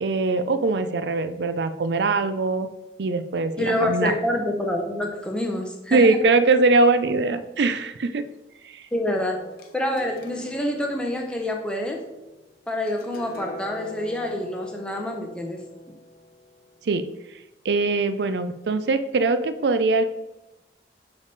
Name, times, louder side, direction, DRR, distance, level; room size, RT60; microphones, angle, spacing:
voice 1, 0.0-2.7 3.0-4.1 5.9-8.2 8.7-8.8 16.9-17.0 17.6-20.0, right 3 dB, 75° right, 11 dB, 0.4 m, -22 dB
voice 2, 3.6-6.2 8.9-9.4 9.7-12.0 12.7-15.6, left 1 dB, 5° left, 1 dB, 0.7 m, -27 dB
sound 1, 9.3-17.1, left 1 dB, 55° left, 0.7 m, -44 dB
7.0 x 3.4 x 4.1 m, 0.99 s
head